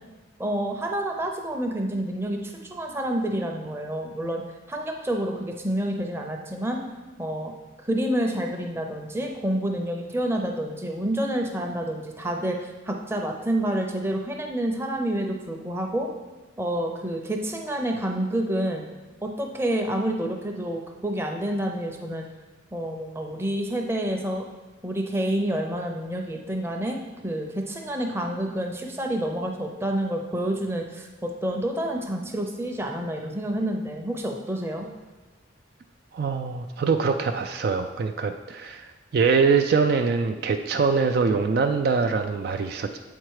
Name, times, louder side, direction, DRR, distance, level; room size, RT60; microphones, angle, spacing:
voice 1, 0.4-6.8 7.2-7.5 7.8-16.1 16.6-18.8 19.2-22.3 22.7-24.5 24.8-34.9, right 1 dB, 10° right, 2 dB, 0.6 m, -28 dB
voice 2, 36.1-43.0, right 5 dB, 50° right, 6 dB, 0.3 m, -23 dB
7.5 x 4.5 x 4.8 m, 1.2 s
head